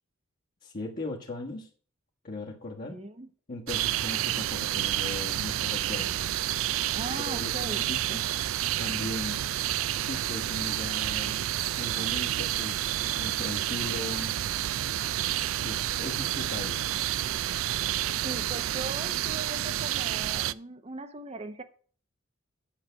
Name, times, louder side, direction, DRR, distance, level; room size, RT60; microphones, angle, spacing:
voice 1, 0.6-1.7 2.2-3.0 3.5-6.3 7.2-8.3 8.8-9.4 10.0-11.4 11.8-14.4 15.6-16.9, left 2 dB, 45° left, 1.4 m, -38 dB
voice 2, 2.9-3.3 6.9-7.8 18.0-21.6, right 2 dB, 30° right, 0.8 m, -39 dB
sound 1, 3.7-20.5, right 12 dB, 85° right, 0.4 m, -29 dB
9.0 x 6.6 x 5.8 m
head